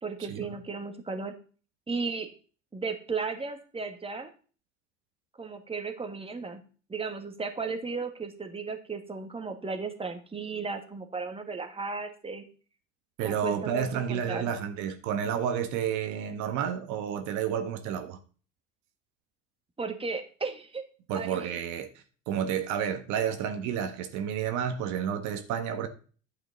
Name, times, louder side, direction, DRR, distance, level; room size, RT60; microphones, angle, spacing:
voice 1, 0.0-1.4 1.9-2.3 2.7-4.3 5.4-6.6 6.9-12.4 13.2-14.5 19.8-20.8 21.1-21.6, right 4 dB, 15° right, 1.8 m, -35 dB
voice 2, 13.2-18.2 21.1-25.9, right 8 dB, 50° right, 1.4 m, -31 dB
11.5 x 8.7 x 4.0 m
figure-of-eight pair, 65°, 37 cm